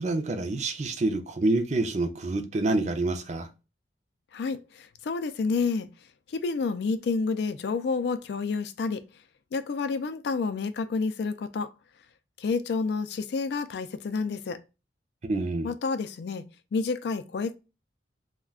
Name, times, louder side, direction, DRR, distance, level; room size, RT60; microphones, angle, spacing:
voice 1, 0.0-3.5 15.2-15.7, right 2 dB, 40° right, 0.4 m, -27 dB
voice 2, 4.3-5.9 6.3-9.0 9.5-11.7 12.4-14.6 15.6-16.4 16.7-17.5, left 4 dB, 65° left, 0.3 m, -29 dB
2.3 x 2.2 x 3.4 m
head